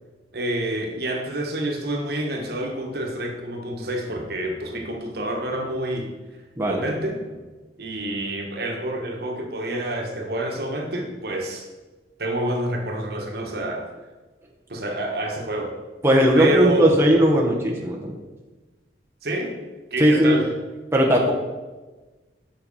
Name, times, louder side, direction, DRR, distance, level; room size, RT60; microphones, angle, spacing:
voice 1, 0.3-6.1 6.7-7.4 7.8-11.7 12.2-13.8 14.7-15.7 16.4-16.9 19.2-19.5 19.9-20.5, right 1 dB, 60° right, 2 dB, 1.4 m, -28 dB
voice 2, 16.0-18.2 20.0-20.4 20.9-21.3, equal, 15° right, -2 dB, 1.0 m, -18 dB
7.4 x 5.7 x 5.5 m, 1.2 s
head